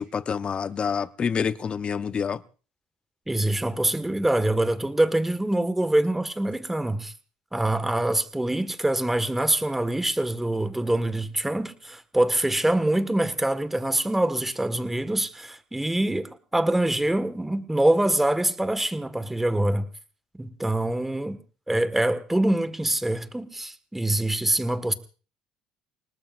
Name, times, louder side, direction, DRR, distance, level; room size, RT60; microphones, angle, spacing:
voice 1, 0.0-2.4, left 6 dB, 40° left, 0.8 m, -27 dB
voice 2, 3.3-7.1 7.5-19.9 20.4-21.4 21.7-24.9, right 1 dB, 10° right, 1.6 m, -25 dB
29.0 x 19.0 x 2.6 m
supercardioid pair, 75°, 3 cm